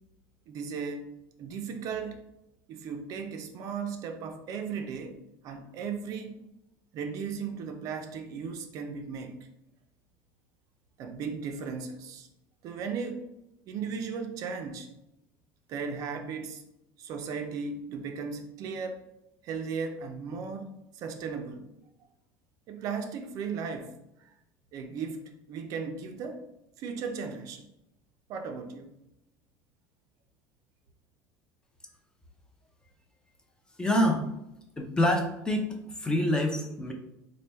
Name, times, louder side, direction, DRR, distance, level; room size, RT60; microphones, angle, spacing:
voice 1, 0.5-1.1 1.4-2.2 2.7-5.2 5.4-6.4 6.9-9.3 11.0-12.3 12.6-13.3 13.7-14.9 15.7-16.6 17.0-19.0 19.4-21.7 22.7-23.9 24.2-24.3 24.7-26.5 26.8-27.7 28.3-28.9, right 5 dB, 50° right, 6 dB, 0.4 m, -36 dB
voice 2, 33.8-34.3 34.8-35.7 36.0-36.9, left 1 dB, 10° left, 2 dB, 0.5 m, -26 dB
3.2 x 2.2 x 4.2 m, 0.87 s
supercardioid pair, 130°, 7 cm